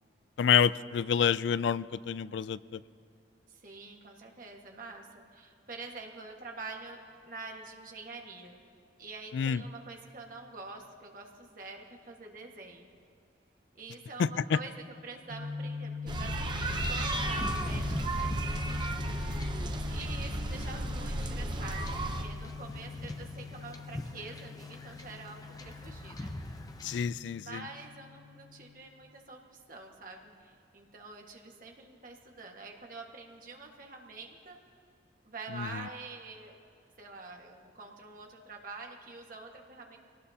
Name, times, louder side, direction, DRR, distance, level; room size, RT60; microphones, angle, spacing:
voice 1, 0.4-2.8 9.3-9.6 14.2-14.6 26.8-27.6 35.5-35.9, left 7 dB, 75° left, 17 dB, 0.3 m, -28 dB
voice 2, 3.5-7.0 7.2-8.6 9.0-12.9 13.7-14.7 15.0-18.9 19.9-26.3 27.4-34.6 35.2-36.6 37.0-40.0, right 3 dB, 50° right, 1 dB, 1.7 m, -46 dB
sound 1, 15.3-28.7, left 6 dB, 65° right, 4.4 m, -43 dB
sound 2, 16.1-22.2, right 1 dB, 25° right, 0.8 m, -33 dB
Wind / Ocean / Boat Water vehicle, 16.6-27.0, left 1 dB, 20° left, 0.7 m, -44 dB
23.5 x 18.5 x 2.9 m, 2.4 s
head